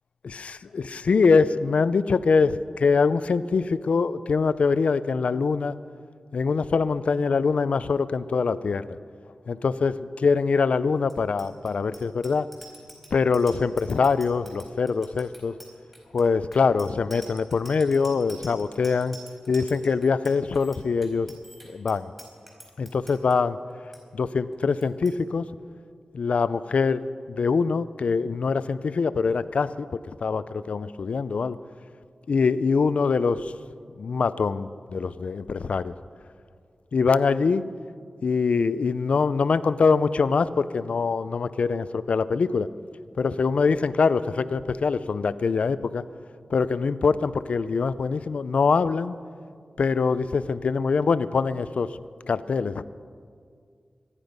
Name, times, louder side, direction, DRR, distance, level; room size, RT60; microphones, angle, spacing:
voice 1, 0.7-5.7 6.3-8.8 9.5-12.5 13.1-15.5 16.1-19.2 19.5-21.3 21.7-22.1 22.8-23.6 24.1-25.4 26.1-27.0 27.3-29.9 30.2-31.6 32.3-33.5 34.0-35.9 36.9-37.7 38.2-42.7 43.2-46.0 46.5-49.2 49.8-51.9 52.3-52.8, left 5 dB, 75° left, 14 dB, 0.5 m, -23 dB
Bicycle bell, 11.0-23.3 23.7-24.0 24.3-24.6 24.8-25.2, right 1 dB, 5° right, 4.4 m, -47 dB
24.0 x 9.9 x 5.3 m, 2.1 s
cardioid pair, 60°, 2 cm